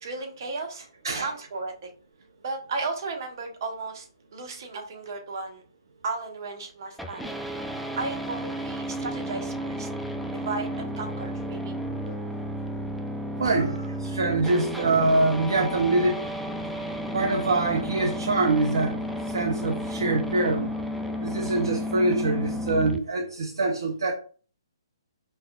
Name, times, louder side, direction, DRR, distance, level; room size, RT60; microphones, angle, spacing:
voice 1, 0.0-0.9 1.2-1.9 2.4-5.6 6.0-7.3 7.7-9.9 10.3-11.7 12.0-12.1, right 3 dB, 50° right, 3 dB, 1.2 m, -34 dB
sound 1, 7.0-23.0, equal, ahead, 0.4 m, -32 dB
voice 2, 13.4-16.2 17.1-18.9 19.3-20.7 21.2-24.1, right 2 dB, 65° right, 2 dB, 0.7 m, -24 dB
5.3 x 3.2 x 2.4 m, 0.40 s
figure-of-eight pair, 130°, 2 cm